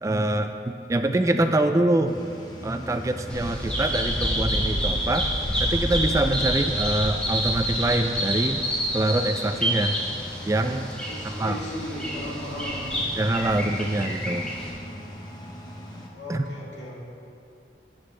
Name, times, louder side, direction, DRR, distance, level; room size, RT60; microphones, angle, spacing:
voice 1, 0.0-2.2 2.6-5.3 5.6-8.6 8.9-10.0 10.5-10.9 11.2-11.6 13.2-14.5 16.3-16.5, right 1 dB, 15° right, 7 dB, 0.3 m, -24 dB
sound 1, 2.1-16.1, equal, 25° left, 1.0 m, -40 dB
Bird vocalization bird call bird song, 3.3-14.7, equal, 5° left, 1.8 m, -28 dB
voice 2, 11.1-13.0 16.1-17.0, equal, 80° left, -5 dB, 2.5 m, -36 dB
12.5 x 9.2 x 3.3 m, 2.5 s
head